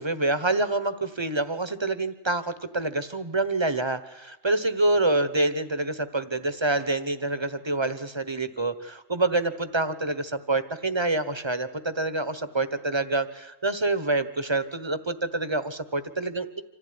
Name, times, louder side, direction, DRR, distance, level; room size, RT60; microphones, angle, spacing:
voice 1, 0.0-16.6, right 2 dB, 20° right, 12 dB, 1.1 m, -27 dB
26.0 x 15.0 x 9.6 m, 0.98 s
omnidirectional pair, 1.3 m